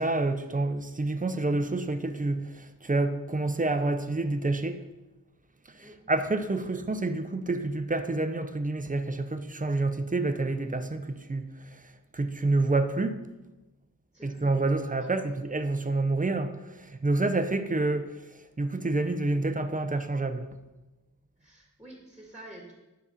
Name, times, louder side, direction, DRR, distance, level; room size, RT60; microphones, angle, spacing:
voice 1, 0.0-4.8 5.7-11.8 12.1-13.2 14.2-18.1 18.6-20.5, right 2 dB, 25° right, 9 dB, 0.7 m, -28 dB
voice 2, 14.1-14.5 15.0-15.1 21.4-22.7, right 1 dB, 5° right, 0 dB, 2.0 m, -48 dB
9.8 x 4.2 x 7.2 m, 1.1 s
wide cardioid pair, 85°, 35 cm